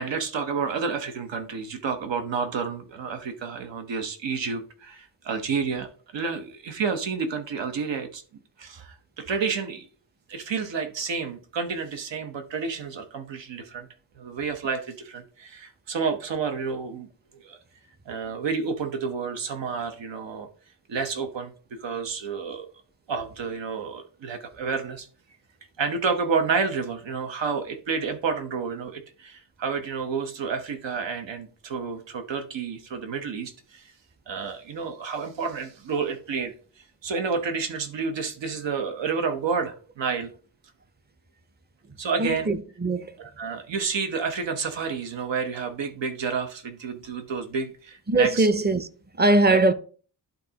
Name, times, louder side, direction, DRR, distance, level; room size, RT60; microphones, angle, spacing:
voice 1, 0.0-5.9 6.1-8.2 8.6-9.9 10.3-13.9 14.2-17.1 17.4-17.6 18.1-20.5 20.9-22.7 23.1-25.1 25.8-33.8 34.3-36.5 37.0-40.3 42.0-42.5 43.2-48.5 49.5-49.6, right 5 dB, 90° right, 1.0 m, -30 dB
voice 2, 42.2-43.1 48.1-48.9 49.2-49.7, right 2 dB, 25° right, 0.6 m, -21 dB
11.5 x 3.9 x 2.8 m
wide cardioid pair, 80°, 43 cm